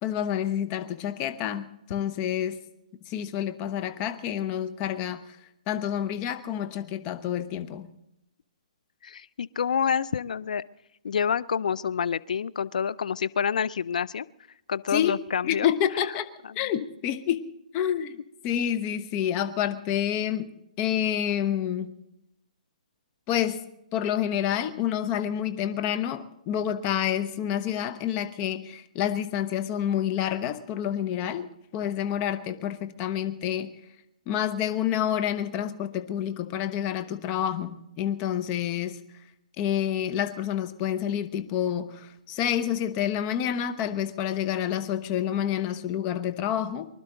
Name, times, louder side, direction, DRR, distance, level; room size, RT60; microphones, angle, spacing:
voice 1, 0.0-2.6 3.0-5.4 5.7-7.9 14.9-15.2 15.4-16.3 16.5-17.5 17.7-20.5 20.8-21.9 23.3-23.6 23.9-33.7 34.3-39.0 39.6-46.9, left 10 dB, 30° left, 12 dB, 0.9 m, -28 dB
voice 2, 9.0-10.6 11.0-14.3 14.7-15.7 16.5-16.6, left 7 dB, 70° left, 18 dB, 0.5 m, -28 dB
24.0 x 12.0 x 3.9 m, 0.85 s
hypercardioid pair, 145°, 4 cm